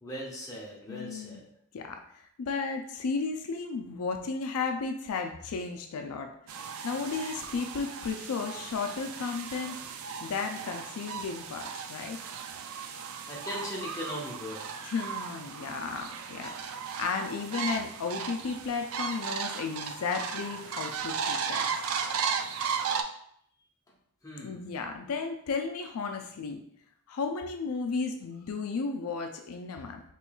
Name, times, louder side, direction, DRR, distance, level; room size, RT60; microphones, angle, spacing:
voice 1, 0.0-1.5 13.3-14.6 24.2-24.7, left 1 dB, 15° left, -4 dB, 0.8 m, -39 dB
voice 2, 0.9-1.4 1.7-6.3 6.8-9.8 10.2-12.2 14.8-16.5 17.0-21.7 24.4-26.6 27.1-30.0, left 4 dB, 75° left, 5 dB, 0.4 m, -34 dB
sound 1, 6.5-23.0, right 6 dB, 65° right, 0.3 m, -36 dB
4.4 x 3.0 x 2.3 m, 0.69 s
head